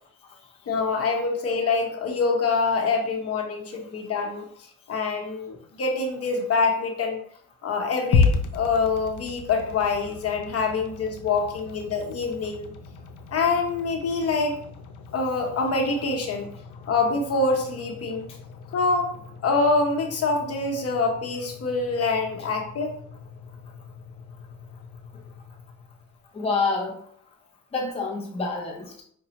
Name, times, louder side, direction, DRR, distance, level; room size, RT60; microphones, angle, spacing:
voice 1, 0.7-4.5 4.9-7.2 7.6-12.7 13.3-14.6 15.1-16.5 16.9-18.2 18.7-19.1 19.4-22.9, left 4 dB, 50° left, 2 dB, 0.9 m, -25 dB
sound 1, 8.1-26.3, left 5 dB, 80° left, 0.6 m, -33 dB
voice 2, 26.3-27.0 27.7-29.0, left 4 dB, 20° left, 0 dB, 0.6 m, -27 dB
5.0 x 2.2 x 2.9 m, 0.62 s
cardioid pair, 90°, 30 cm